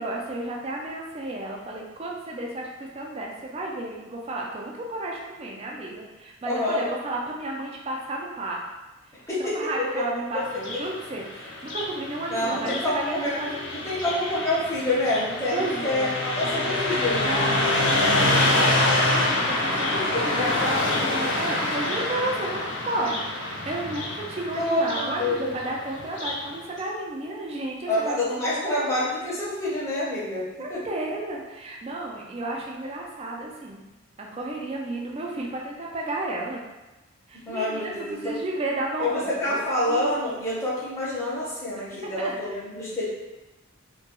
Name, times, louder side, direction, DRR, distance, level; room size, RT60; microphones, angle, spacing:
voice 1, 0.0-8.6 9.4-14.0 15.5-16.1 16.6-16.8 17.2-28.9 30.6-33.8 34.2-36.6 37.3-40.2 41.7-42.4, right 2 dB, 30° right, -1 dB, 0.3 m, -32 dB
voice 2, 6.4-6.9 9.3-9.6 12.3-13.4 13.7-17.3 19.9-20.0 24.5-25.5 27.9-30.4 30.7-30.8 37.5-38.4 39.0-43.0, left 1 dB, 15° left, -8 dB, 0.6 m, -27 dB
Car passing by, 10.5-26.5, left 2 dB, 55° left, 0.5 m, -26 dB
2.2 x 2.2 x 2.9 m, 1.1 s
head